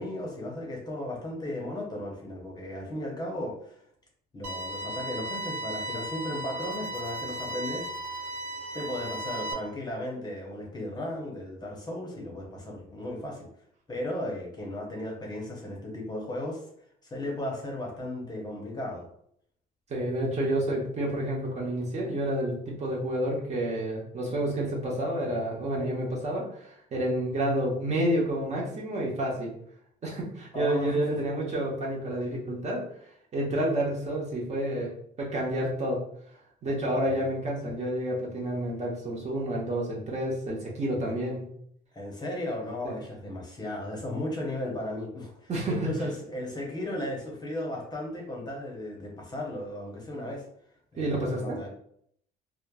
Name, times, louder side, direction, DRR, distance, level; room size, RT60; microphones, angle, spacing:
voice 1, 0.0-3.8 4.3-8.2 8.7-13.5 13.9-16.6 17.0-19.1 30.5-31.2 37.0-37.3 37.6-37.7 41.0-41.2 41.9-50.4 50.9-51.7, left 1 dB, 20° left, -1 dB, 0.8 m, -35 dB
sound 1, 4.4-9.5, right 1 dB, 90° right, 0.6 m, -35 dB
voice 2, 19.9-29.5 30.0-32.8 33.3-34.9 35.2-36.0 36.6-41.4 45.5-46.0 51.0-51.6, right 1 dB, 40° right, -3 dB, 0.9 m, -29 dB
3.1 x 2.0 x 2.3 m, 0.68 s
cardioid pair, 100°, 19 cm